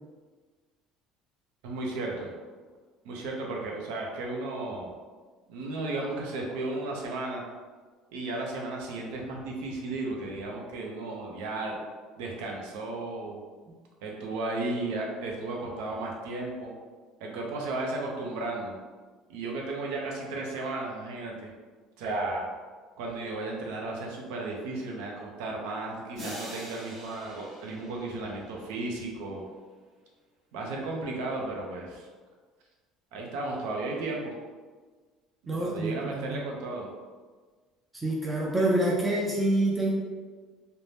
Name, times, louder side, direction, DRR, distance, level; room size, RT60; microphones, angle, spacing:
voice 1, 1.6-2.3 3.0-4.9 5.5-7.4 8.1-11.8 12.2-13.4 14.0-16.7 17.2-18.8 19.3-21.5 22.0-22.5 23.0-29.4 30.5-32.1 33.1-34.3 35.4-36.9, right 2 dB, 85° right, -1 dB, 0.5 m, -34 dB
sound 1, 26.1-29.0, equal, 30° right, 0.8 m, -43 dB
voice 2, 35.5-36.4 37.9-39.9, right 1 dB, 10° right, -4 dB, 0.3 m, -27 dB
2.6 x 2.1 x 3.3 m, 1.4 s
cardioid pair, 175°, 0 cm